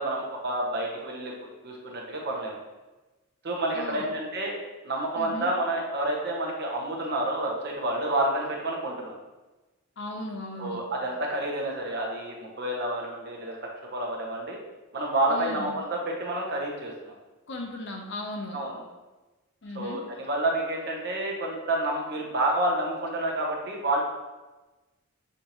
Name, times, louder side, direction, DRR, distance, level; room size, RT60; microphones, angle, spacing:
voice 1, 0.0-2.6 3.4-4.5 4.8-9.2 10.6-14.6 14.9-17.1 18.5-18.8 19.7-24.0, right 1 dB, 50° right, -1 dB, 0.9 m, -29 dB
voice 2, 3.7-4.1 5.2-5.5 10.0-10.8 15.3-15.7 17.5-18.6 19.6-20.0, left 1 dB, 55° left, 2 dB, 0.7 m, -36 dB
6.6 x 2.6 x 3.0 m, 1.1 s
head